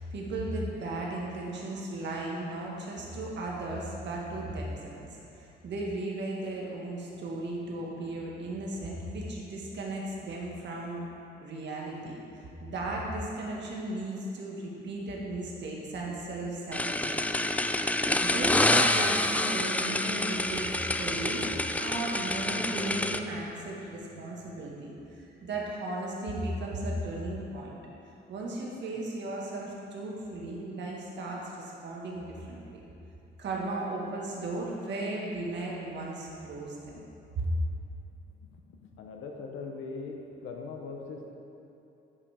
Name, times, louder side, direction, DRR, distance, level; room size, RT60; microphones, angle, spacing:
voice 1, 0.0-5.1 5.3-11.0 11.4-17.5 18.2-27.8 28.3-32.8 33.4-37.0 37.4-37.5, right 2 dB, 65° right, -3 dB, 1.8 m, -36 dB
sound 1, 16.7-23.2, left 1 dB, 5° left, 0.3 m, -27 dB
voice 2, 38.8-41.3, left 4 dB, 85° left, 1 dB, 0.9 m, -40 dB
9.4 x 5.7 x 5.0 m, 2.8 s
cardioid pair, 90°, 20 cm